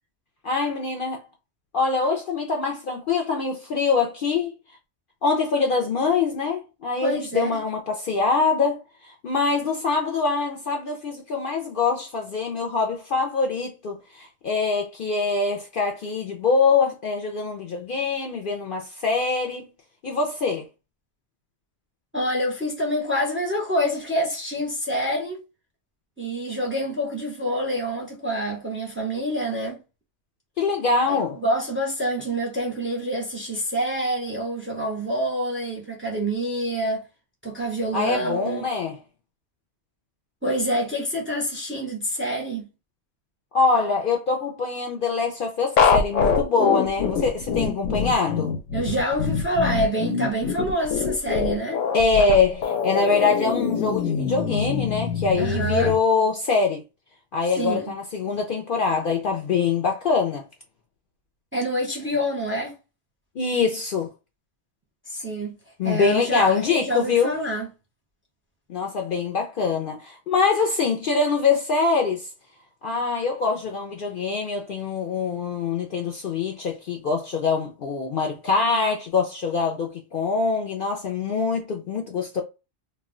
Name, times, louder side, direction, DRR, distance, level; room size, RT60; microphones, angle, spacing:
voice 1, 0.4-1.2 1.7-4.5 5.2-19.7 20.0-20.7 30.6-31.4 37.9-39.0 43.5-48.5 51.9-56.8 57.3-60.4 63.4-64.1 65.8-67.3 68.7-72.3 72.8-82.4, left 4 dB, 60° left, 0.6 m, -24 dB
voice 2, 7.0-7.6 22.1-25.4 26.2-29.8 31.1-37.0 37.4-38.6 40.4-42.7 48.7-51.8 55.4-56.0 57.6-57.9 61.5-62.7 65.1-65.6 65.8-67.7, equal, 15° right, 0.6 m, -27 dB
sound 1, 45.8-56.0, left 6 dB, 90° left, 0.9 m, -24 dB
2.3 x 2.2 x 3.6 m
omnidirectional pair, 1.2 m